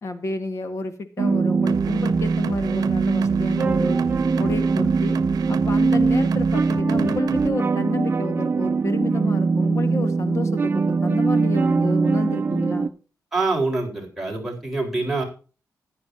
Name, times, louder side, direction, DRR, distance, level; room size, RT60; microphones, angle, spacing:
voice 1, 0.0-4.0 4.4-5.2 5.5-12.9, left 3 dB, 50° left, 9 dB, 1.6 m, -30 dB
sound 1, 1.2-12.9, right 4 dB, 35° right, 0.7 m, -21 dB
sound 2, 1.7-7.5, right 8 dB, 85° right, 0.8 m, -35 dB
voice 2, 13.3-15.2, right 3 dB, 5° right, -1 dB, 4.2 m, -25 dB
15.0 x 10.5 x 2.7 m, 0.36 s
wide cardioid pair, 135°, 6 cm